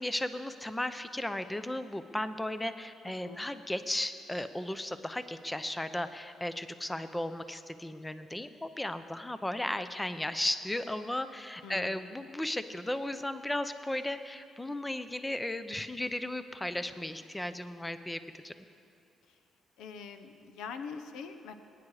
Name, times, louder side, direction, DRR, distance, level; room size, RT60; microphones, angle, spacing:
voice 1, 0.0-18.2 18.4-18.5, left 1 dB, 10° left, 11 dB, 0.6 m, -35 dB
voice 2, 11.6-12.1 19.3-19.4 19.8-21.5, left 5 dB, 90° left, 8 dB, 0.8 m, -44 dB
21.0 x 9.8 x 4.9 m, 2.4 s
cardioid pair, 90°, 0 cm